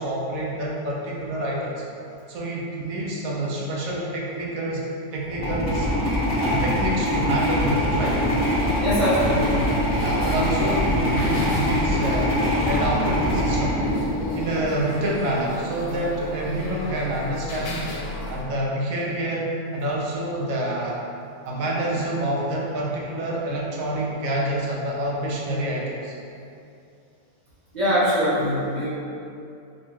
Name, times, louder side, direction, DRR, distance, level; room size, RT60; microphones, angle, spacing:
voice 1, 0.0-1.7 2.3-4.8 5.1-5.9 6.4-8.2 10.0-12.4 12.6-13.8 14.3-17.8 18.3-21.0 21.5-26.1, right 1 dB, 75° right, -3 dB, 1.0 m, -27 dB
sound 1, 5.3-14.7, left 1 dB, 15° left, 0.8 m, -23 dB
sound 2, 7.8-18.4, left 1 dB, 85° left, 1.1 m, -35 dB
voice 2, 8.8-9.7 27.7-28.9, equal, 35° right, -10 dB, 1.0 m, -22 dB
4.2 x 2.2 x 3.0 m, 2.6 s
omnidirectional pair, 1.6 m